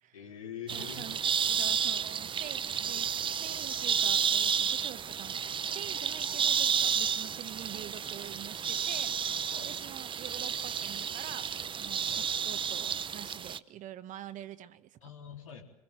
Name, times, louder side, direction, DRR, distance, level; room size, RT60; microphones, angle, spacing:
voice 1, 0.1-1.1 9.5-9.7 12.1-12.3 15.0-15.6, left 8 dB, 90° left, 1 dB, 4.0 m, -44 dB
sound 1, 0.7-13.6, right 7 dB, 30° right, 0.8 m, -31 dB
voice 2, 0.7-9.1 9.6-15.1, right 12 dB, 50° right, 13 dB, 1.3 m, -46 dB
25.0 x 21.5 x 7.7 m, 0.94 s
hypercardioid pair, 80°, 17 cm